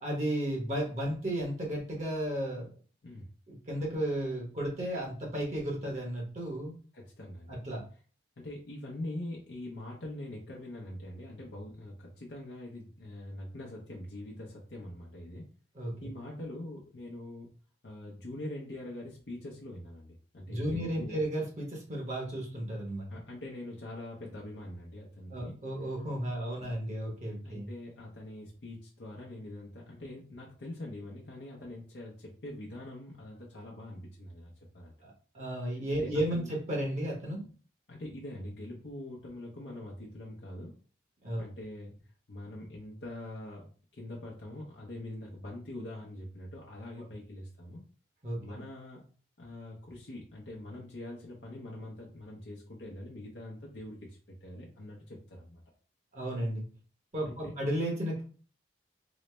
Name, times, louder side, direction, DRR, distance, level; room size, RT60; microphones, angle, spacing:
voice 1, 0.0-2.7 3.5-6.7 7.5-7.8 15.8-15.9 20.5-23.1 25.3-27.7 35.0-37.4 41.2-41.4 48.2-48.6 56.1-56.6 57.1-58.2, right 1 dB, 40° right, -1 dB, 1.0 m, -33 dB
voice 2, 6.9-7.6 8.4-15.4 16.0-17.5 17.8-21.2 23.1-25.5 27.4-34.9 36.0-36.5 37.9-40.7 41.4-41.9 42.3-47.8 48.4-49.0 49.4-55.6 57.2-57.5, left 1 dB, 70° left, -3 dB, 0.7 m, -43 dB
3.9 x 2.1 x 3.2 m, 0.40 s
head